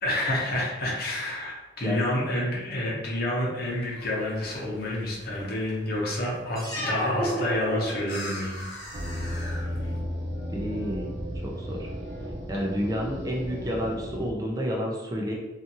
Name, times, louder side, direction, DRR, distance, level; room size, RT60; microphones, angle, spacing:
voice 1, 0.0-8.7, left 1 dB, 60° left, -4 dB, 0.8 m, -29 dB
sound 1, 3.6-10.0, left 1 dB, 80° left, 0.9 m, -44 dB
sound 2, 6.5-8.4, equal, 20° left, 0.8 m, -30 dB
sound 3, 8.9-14.3, equal, 75° right, 0.7 m, -34 dB
voice 2, 10.5-11.1 11.4-11.9 12.5-15.3, equal, 20° right, -2 dB, 0.4 m, -30 dB
2.6 x 2.4 x 2.6 m, 1.1 s
head